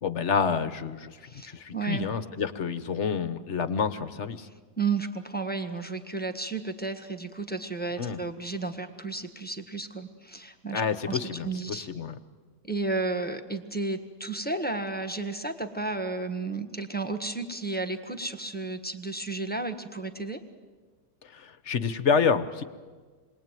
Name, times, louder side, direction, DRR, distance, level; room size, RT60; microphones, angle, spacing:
voice 1, 0.0-1.2 1.4-4.5 8.0-8.2 10.7-12.2 21.2-22.6, left 6 dB, 50° left, 12 dB, 1.2 m, -28 dB
voice 2, 1.2-2.1 4.8-10.8 11.1-11.9 12.6-20.4, right 3 dB, 5° left, 6 dB, 1.3 m, -33 dB
27.5 x 22.0 x 9.1 m, 1.4 s
omnidirectional pair, 1.8 m